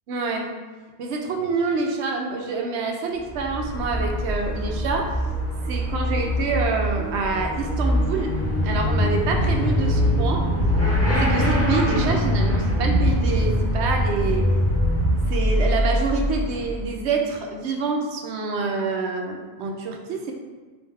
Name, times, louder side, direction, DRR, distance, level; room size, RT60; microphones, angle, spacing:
voice 1, 0.1-0.5 1.0-5.1 5.7-8.4 8.6-10.5 11.2-14.5 15.3-20.3, right 3 dB, 80° right, 2 dB, 0.9 m, -27 dB
Motorcycle / Accelerating revving vroom, 3.2-17.0, equal, 15° left, 0.8 m, -26 dB
sound 1, 8.4-15.2, equal, 85° left, 1.1 m, -23 dB
3.3 x 2.7 x 3.2 m, 1.3 s
omnidirectional pair, 1.1 m